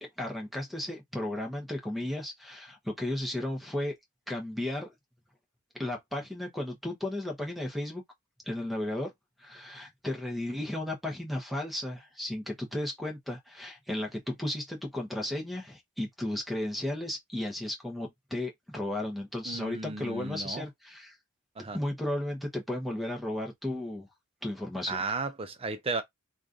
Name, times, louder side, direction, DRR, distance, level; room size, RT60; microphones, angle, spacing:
voice 1, 0.0-4.0 4.3-4.9 5.7-8.0 8.5-9.1 9.4-21.1 21.7-24.1 24.4-25.0, left 1 dB, ahead, 0.9 m, -34 dB
voice 2, 19.4-20.6 21.6-21.8 24.9-26.0, right 3 dB, 25° right, 0.5 m, -34 dB
3.1 x 2.5 x 3.7 m
head